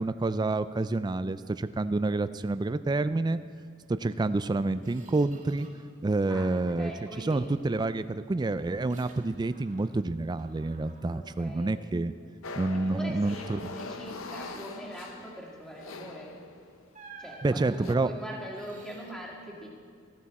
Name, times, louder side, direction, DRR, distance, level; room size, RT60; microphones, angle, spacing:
voice 1, 0.0-3.4 3.9-5.7 6.0-6.9 7.2-12.1 12.6-13.7 17.4-18.1, right 2 dB, 20° right, 13 dB, 0.3 m, -28 dB
Squeak, 4.0-4.2 4.5-6.0 6.3-6.9 7.3-10.1 10.4-12.2 12.6-12.9 13.3-13.9 16.0-16.2 16.9-19.1, right 4 dB, 40° right, 1.8 m, -54 dB
voice 2, 6.3-7.5 11.1-11.7 12.7-16.3 17.2-19.7, equal, 5° left, -3 dB, 2.0 m, -42 dB
sound 1, 12.4-16.9 17.6-18.0, left 3 dB, 70° left, 0.8 m, -43 dB
14.5 x 14.5 x 4.2 m, 2.1 s
head